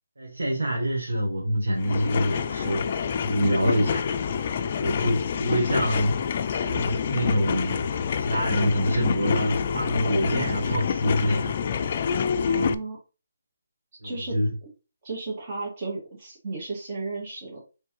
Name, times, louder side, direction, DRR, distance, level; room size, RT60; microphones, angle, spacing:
voice 1, 0.2-2.9 3.2-4.0 4.8-6.2 6.6-11.5 14.0-14.5, equal, 90° right, 1.3 m, -26 dB
sound 1, 1.8-12.7, left 6 dB, 40° left, 0.4 m, -27 dB
voice 2, 3.4-3.9 12.4-13.0 14.0-14.7 15.0-17.6, right 3 dB, 35° right, 1.8 m, -34 dB
4.5 x 3.2 x 3.0 m
hypercardioid pair, 160°, 0 cm